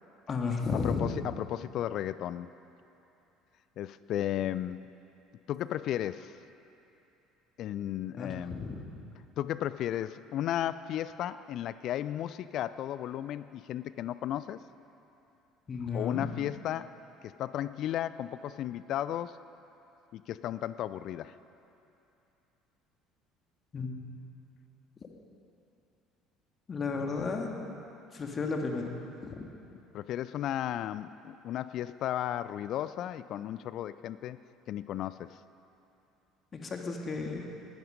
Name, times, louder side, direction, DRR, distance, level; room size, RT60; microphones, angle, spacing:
voice 1, 0.3-1.1 8.2-8.9 15.7-16.3 23.7-23.9 26.7-27.5 28.1-28.9 29.2-29.4 36.5-37.5, left 4 dB, 35° left, 2 dB, 2.1 m, -33 dB
voice 2, 0.8-2.5 3.8-4.9 5.5-6.4 7.6-8.6 9.4-14.6 15.9-16.9 17.2-19.4 20.1-21.4 29.9-34.4 34.7-35.4, left 11 dB, 55° left, 16 dB, 0.4 m, -34 dB
19.5 x 11.5 x 5.3 m, 2.8 s
figure-of-eight pair, 60°, 0 cm